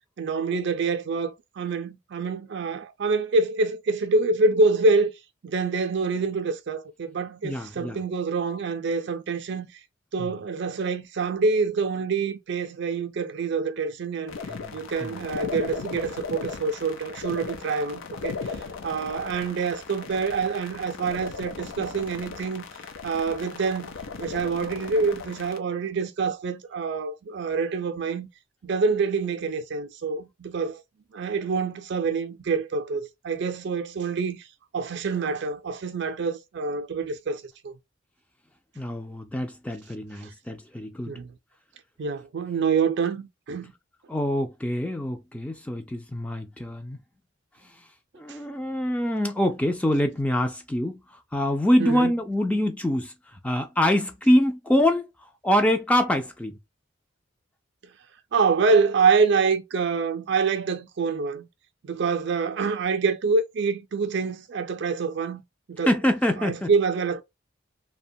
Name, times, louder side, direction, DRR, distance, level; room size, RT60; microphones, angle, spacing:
voice 1, 0.2-5.1 5.4-9.7 10.1-14.4 14.7-18.6 18.8-22.7 23.0-28.3 28.6-30.8 31.1-34.4 34.7-37.8 41.1-41.3 42.0-43.7 48.3-48.4 51.8-52.1 58.3-61.5 61.8-65.4 65.7-65.9 66.4-67.2, right 4 dB, 60° right, 0.4 m, -26 dB
voice 2, 7.4-8.0 10.2-10.3 14.5-14.8 15.0-15.2 38.8-41.2 44.1-47.0 48.1-51.0 51.3-55.0 55.4-56.6 65.9-66.7, left 1 dB, 5° left, 0.3 m, -25 dB
sound 1, 14.3-25.6, left 5 dB, 90° left, 0.5 m, -37 dB
2.8 x 2.2 x 2.6 m
head